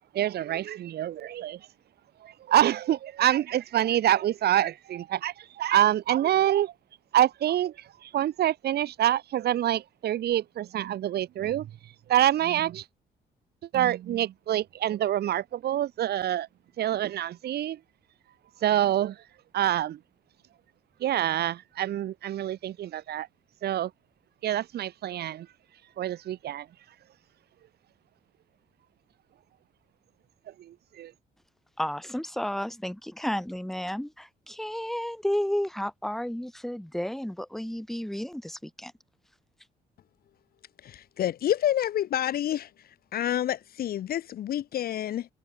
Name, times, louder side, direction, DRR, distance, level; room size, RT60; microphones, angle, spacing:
voice 1, 0.1-1.7 2.2-6.7 7.1-12.8 13.7-16.5 16.8-17.8 18.6-19.2 19.5-20.0 21.0-23.3 23.6-23.9 24.4-25.5 26.0-26.7 30.6-31.1, right 12 dB, 65° right, 1.1 m, -26 dB
voice 2, 31.8-38.9, equal, ahead, 1.5 m, -32 dB
voice 3, 40.8-42.7 43.1-45.3, left 11 dB, 60° left, 0.8 m, -28 dB
cardioid pair, 140°, 17 cm